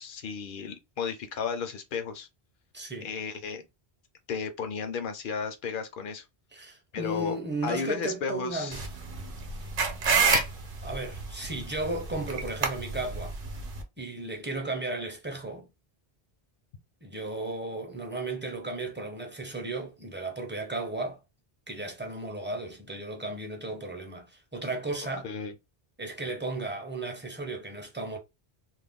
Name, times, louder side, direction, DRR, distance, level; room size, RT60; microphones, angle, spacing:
voice 1, 0.0-2.3 3.0-3.6 4.3-6.3 6.9-7.3 7.6-8.8 25.2-25.5, left 5 dB, 60° left, 0.6 m, -33 dB
voice 2, 2.7-3.1 6.5-8.8 10.8-13.4 14.0-15.7 17.0-21.2 21.7-25.3 26.0-28.2, right 2 dB, 15° right, 0.4 m, -35 dB
sound 1, 8.7-13.8, right 4 dB, 60° right, 0.8 m, -29 dB
2.4 x 2.1 x 3.4 m
omnidirectional pair, 1.1 m